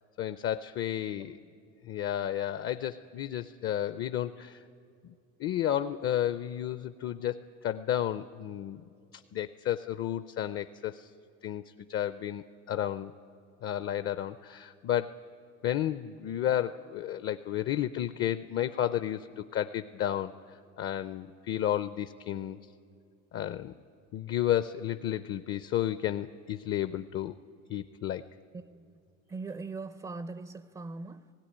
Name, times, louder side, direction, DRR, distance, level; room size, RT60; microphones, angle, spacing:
voice 1, 0.2-1.4 1.8-4.7 5.0-5.1 5.4-8.9 9.3-11.1 11.4-11.6 11.9-13.1 13.6-15.2 15.6-22.6 23.3-23.7 24.1-27.3 27.7-28.2, left 11 dB, 40° left, 0.5 m, -32 dB
voice 2, 28.5-29.0 29.3-31.3, right 3 dB, 15° right, 0.4 m, -41 dB
17.5 x 16.5 x 10.0 m
cardioid pair, 120°, 32 cm